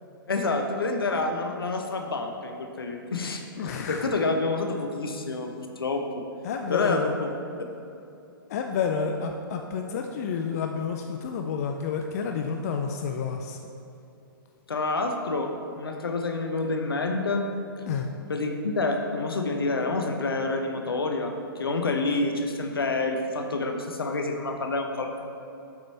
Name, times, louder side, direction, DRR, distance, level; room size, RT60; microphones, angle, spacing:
voice 1, 0.3-6.2 6.7-7.3 14.7-15.5 15.8-17.5 18.3-25.3, left 3 dB, 75° left, 4 dB, 0.9 m, -28 dB
voice 2, 3.6-4.1 6.4-7.2 8.5-13.6 17.9-18.1, left 6 dB, 40° left, 4 dB, 0.5 m, -30 dB
8.0 x 5.2 x 4.2 m, 2.8 s
figure-of-eight pair, 120°, 12 cm